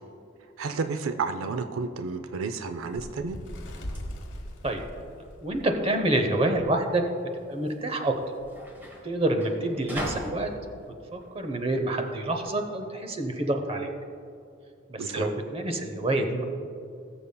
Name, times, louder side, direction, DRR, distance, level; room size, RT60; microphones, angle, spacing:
voice 1, 0.6-3.4 15.0-15.3, right 4 dB, 80° right, 8 dB, 0.5 m, -31 dB
sound 1, 2.5-12.5, equal, 10° right, 1.1 m, -42 dB
Bird, 2.9-6.1 6.6-6.7 7.0-7.3 8.1-8.2, equal, 65° left, 1.4 m, -39 dB
voice 2, 5.4-7.0 7.5-8.1 9.0-10.5 11.1-13.9 14.9-16.4, right 1 dB, 30° right, 5 dB, 0.7 m, -27 dB
19.5 x 6.9 x 2.2 m, 2.5 s
head